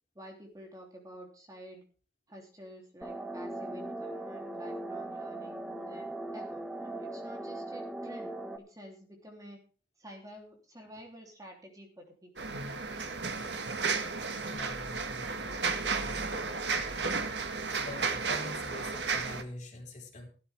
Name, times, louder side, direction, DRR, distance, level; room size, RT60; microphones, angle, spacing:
voice 1, 0.1-1.8 2.3-9.6 10.0-12.5, equal, 20° right, 1 dB, 3.2 m, -50 dB
sound 1, 3.0-8.6, right 1 dB, 5° right, 1.1 m, -39 dB
sound 2, 12.4-19.4, right 4 dB, 70° right, 1.7 m, -33 dB
voice 2, 14.5-15.6 16.0-16.1 16.9-17.2 17.7-20.3, left 1 dB, 40° left, 1 dB, 4.5 m, -45 dB
15.0 x 12.5 x 3.5 m, 0.38 s
head